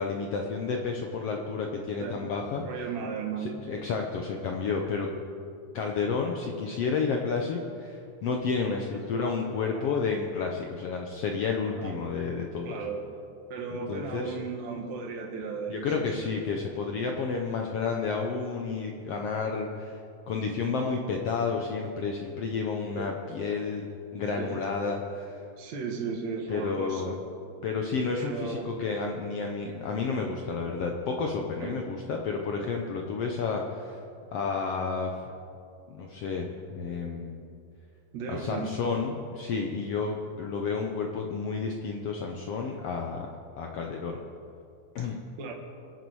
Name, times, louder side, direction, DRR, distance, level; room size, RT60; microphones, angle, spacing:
voice 1, 0.0-2.6 3.4-5.1 5.7-12.8 13.9-14.4 15.7-20.0 20.3-23.9 24.1-25.4 26.5-27.1 27.6-34.0 34.3-35.3 35.9-37.3 38.3-43.3 43.6-44.2 44.9-45.2, left 4 dB, 80° left, 1 dB, 1.3 m, -31 dB
voice 2, 2.6-3.6 8.9-9.0 9.3-9.4 9.7-9.9 11.8-11.9 12.7-13.0 13.5-16.3 23.0-23.1 24.4-24.6 25.6-27.2 28.2-28.7 31.6-31.8 38.1-38.7 45.0-45.1 45.4-45.5, right 4 dB, 60° right, -1 dB, 2.5 m, -35 dB
23.5 x 8.3 x 4.8 m, 2.5 s
omnidirectional pair, 3.9 m